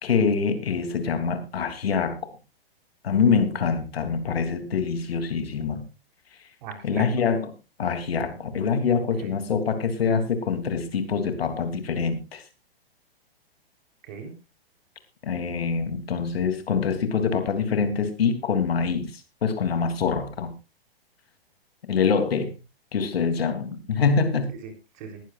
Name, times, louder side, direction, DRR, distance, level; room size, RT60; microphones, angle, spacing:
voice 1, 0.0-2.2 3.0-5.8 6.8-7.4 7.8-12.4 15.2-20.5 21.9-22.5 22.9-24.5, left 5 dB, 75° left, 8 dB, 3.2 m, -25 dB
voice 2, 6.6-7.1 8.2-8.3 9.2-9.4 14.0-14.3 23.2-23.3 24.5-25.2, right 6 dB, 50° right, 5 dB, 3.9 m, -40 dB
20.0 x 12.0 x 2.5 m, 0.28 s
hypercardioid pair, 125°, 31 cm